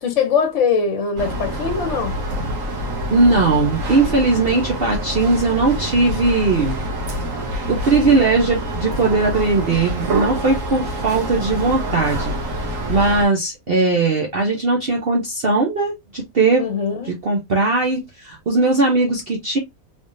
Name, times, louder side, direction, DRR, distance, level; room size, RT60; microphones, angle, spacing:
voice 1, 0.0-2.2 16.6-17.1, left 6 dB, 60° left, 1.1 m, -21 dB
sound 1, 1.2-13.3, right 1 dB, 65° right, 1.4 m, -26 dB
voice 2, 3.1-6.8 7.7-12.3 12.7-16.7 17.0-19.6, right 3 dB, 50° right, 0.9 m, -19 dB
3.5 x 3.4 x 2.6 m
omnidirectional pair, 1.5 m